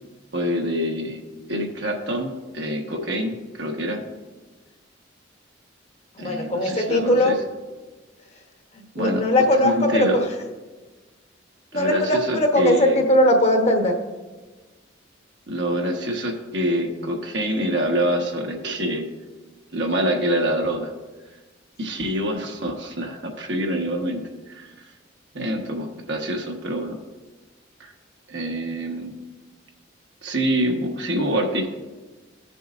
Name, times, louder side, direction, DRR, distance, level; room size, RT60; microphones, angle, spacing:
voice 1, 0.3-4.0 6.2-7.3 8.9-9.2 9.6-10.2 11.7-13.0 15.5-19.0 19.7-20.9 21.8-24.7 25.3-27.0 27.8-27.9 28.3-29.1 30.2-31.7, equal, 65° right, 2 dB, 1.2 m, -26 dB
voice 2, 6.1-7.4 8.7-10.3 11.7-14.0, left 1 dB, 35° left, 3 dB, 1.0 m, -20 dB
16.0 x 6.8 x 2.5 m, 1.3 s
head